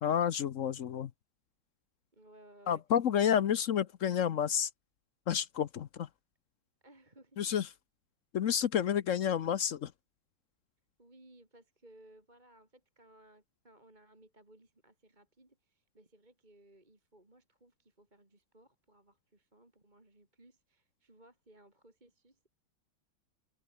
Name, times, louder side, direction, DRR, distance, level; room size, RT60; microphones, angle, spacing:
voice 1, 0.0-1.1 2.7-4.7 5.3-6.1 7.4-7.7 8.3-9.9, left 9 dB, 65° left, 0.8 m, -30 dB
voice 2, 2.1-2.8 6.8-7.5 11.0-22.5, right 1 dB, 20° right, 3.9 m, -61 dB
omnidirectional pair, 2.3 m